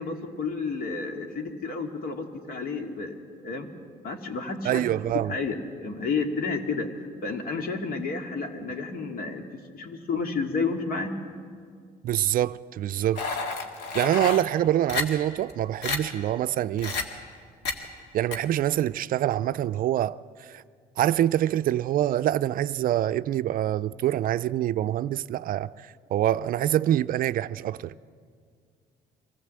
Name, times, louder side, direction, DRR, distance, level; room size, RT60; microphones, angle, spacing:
voice 1, 0.0-3.2 3.4-3.7 4.0-9.4 9.7-11.1, left 4 dB, 60° left, 2.3 m, -31 dB
voice 2, 4.6-5.3 12.0-13.2 13.9-16.9 18.1-20.6 21.0-25.7 26.1-27.9, right 12 dB, 55° right, 0.4 m, -25 dB
sound 1, 13.2-14.4 14.9-15.0 15.5-15.6 15.8-16.0 16.8-17.0 17.7-17.8 18.3-18.4, left 4 dB, 80° left, 2.0 m, -29 dB
24.0 x 16.0 x 7.6 m
cardioid pair, 110°, 17 cm